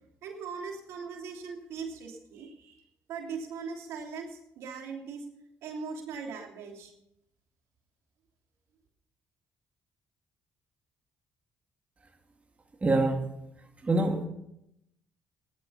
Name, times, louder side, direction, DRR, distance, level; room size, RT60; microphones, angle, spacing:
voice 1, 0.2-2.8 3.1-5.2 5.6-6.9, right 5 dB, 75° right, 1 dB, 3.0 m, -40 dB
voice 2, 12.8-13.3 13.8-14.3, right 2 dB, 30° right, 3 dB, 2.5 m, -25 dB
14.5 x 11.0 x 5.8 m, 0.80 s
supercardioid pair, 65°, 5 cm